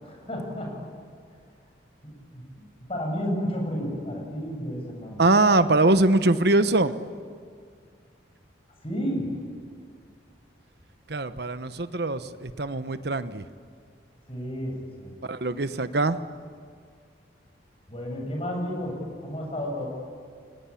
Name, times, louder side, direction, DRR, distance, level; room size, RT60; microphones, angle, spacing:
voice 1, 0.0-0.8 2.0-2.4 2.9-5.2 8.8-9.3 14.3-15.1 17.9-19.9, equal, 30° left, 0 dB, 7.3 m, -31 dB
voice 2, 5.2-7.0 11.1-13.5 15.2-16.2, right 2 dB, 60° right, 11 dB, 1.0 m, -22 dB
30.0 x 22.5 x 8.5 m, 2.1 s
head